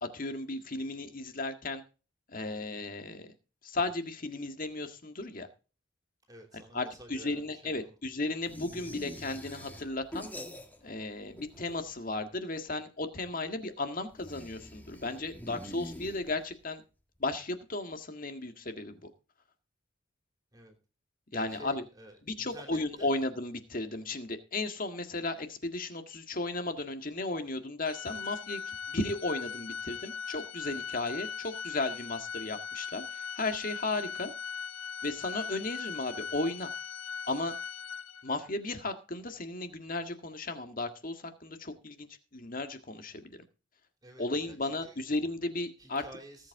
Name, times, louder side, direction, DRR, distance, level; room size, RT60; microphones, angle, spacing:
voice 1, 0.0-1.8 2.3-3.3 3.6-5.5 6.7-10.3 10.8-16.8 17.2-19.0 21.3-21.8 22.3-34.3 35.0-36.7 37.3-37.5 38.2-42.1 42.3-43.4 44.2-46.0, left 2 dB, 45° left, 7 dB, 1.8 m, -35 dB
voice 2, 6.3-7.9 20.5-20.8 21.3-23.1 44.0-45.1 45.8-46.5, equal, 20° right, 3 dB, 3.1 m, -51 dB
sound 1, 8.5-11.0 11.3-12.1 14.1-16.6, equal, 10° left, 1.5 m, -45 dB
Organ, 27.8-38.5, left 6 dB, 80° left, 0.7 m, -40 dB
19.0 x 8.3 x 3.7 m, 0.34 s
head